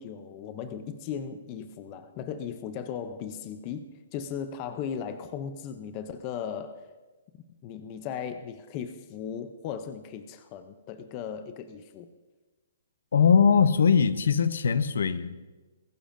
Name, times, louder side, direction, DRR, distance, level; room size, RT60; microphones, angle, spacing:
voice 1, 0.0-6.8 7.6-12.1, left 7 dB, 20° left, 9 dB, 0.5 m, -37 dB
voice 2, 13.1-15.5, left 6 dB, 70° left, 14 dB, 0.7 m, -21 dB
20.0 x 15.5 x 2.6 m, 1.2 s
hypercardioid pair, 180°, 0 cm